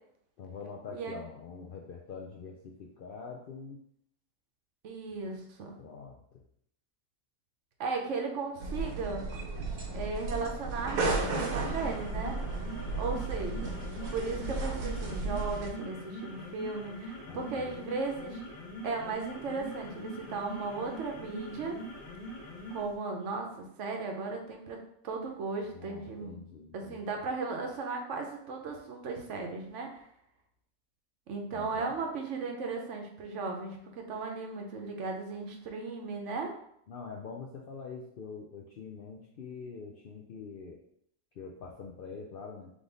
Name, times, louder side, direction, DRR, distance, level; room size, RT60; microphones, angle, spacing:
voice 1, 0.4-3.8 5.8-6.2 12.9-13.3 13.7-14.0 17.3-17.8 25.7-27.0 31.5-32.0 36.9-40.8 41.3-42.7, left 5 dB, 65° left, -1 dB, 0.5 m, -44 dB
voice 2, 4.8-5.8 7.8-9.2 9.9-12.4 13.0-13.8 14.1-18.4 18.8-21.8 22.7-26.3 26.7-30.1 31.3-36.5, right 4 dB, 65° right, 2 dB, 1.0 m, -36 dB
sound 1, 8.6-15.7, right 3 dB, 90° right, 1.2 m, -34 dB
sound 2, 11.0-22.9, equal, 85° left, 2.0 m, -43 dB
3.7 x 3.4 x 3.9 m, 0.71 s
omnidirectional pair, 1.4 m